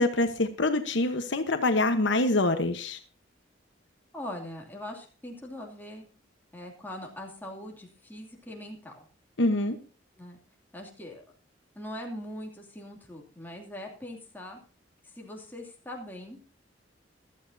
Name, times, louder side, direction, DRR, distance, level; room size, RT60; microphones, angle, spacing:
voice 1, 0.0-3.0 9.4-9.8, left 2 dB, 70° left, 8 dB, 1.1 m, -25 dB
voice 2, 4.1-6.1 6.5-9.0 10.2-10.4 10.7-11.2 11.8-14.6 15.1-16.4, left 1 dB, 10° left, 0 dB, 2.6 m, -41 dB
15.5 x 12.5 x 2.7 m, 0.38 s
head